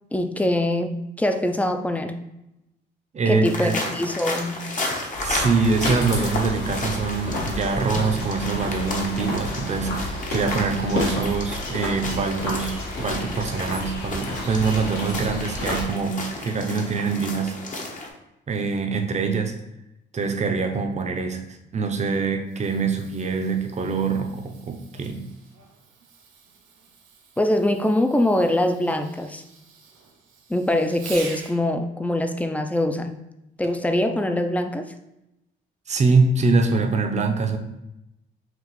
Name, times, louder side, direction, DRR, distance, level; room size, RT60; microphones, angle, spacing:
voice 1, 0.1-2.2 3.3-4.6 27.4-29.4 30.5-33.2 33.6-34.8, left 1 dB, 5° left, 7 dB, 0.4 m, -23 dB
voice 2, 3.1-3.8 5.2-17.6 18.5-19.5 20.1-25.2 35.9-37.6, right 4 dB, 35° right, 4 dB, 0.6 m, -24 dB
sound 1, 3.4-18.1, left 2 dB, 40° left, 0.9 m, -33 dB
sound 2, 5.1-15.8, left 1 dB, 75° left, 1.5 m, -30 dB
Fireworks, 22.3-31.6 33.6-34.0 34.7-34.8, right 5 dB, 80° right, 0.7 m, -45 dB
5.8 x 2.4 x 3.0 m, 0.89 s
cardioid pair, 90°, 20 cm